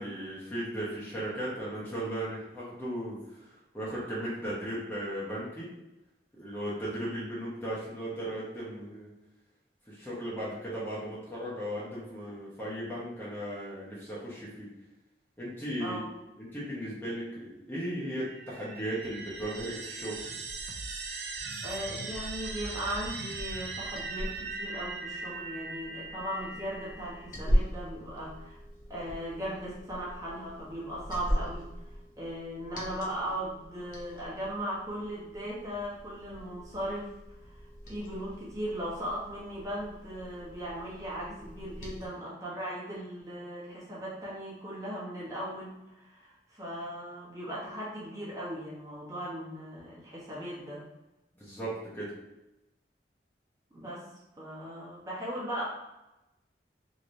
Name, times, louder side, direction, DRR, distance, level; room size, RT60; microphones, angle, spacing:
voice 1, 0.0-5.7 6.4-9.1 9.9-14.7 15.4-16.0 16.4-20.2 51.4-52.1, right 1 dB, 10° left, -8 dB, 0.7 m, -36 dB
sound 1, 18.0-27.3, right 3 dB, 65° right, 0.4 m, -39 dB
voice 2, 21.6-28.6 28.9-37.1 37.4-50.8 53.7-54.0 54.4-55.6, equal, 20° right, -7 dB, 0.9 m, -38 dB
Liquid, 23.5-42.1, equal, 45° left, 0.7 m, -38 dB
3.1 x 2.8 x 2.6 m, 0.95 s
head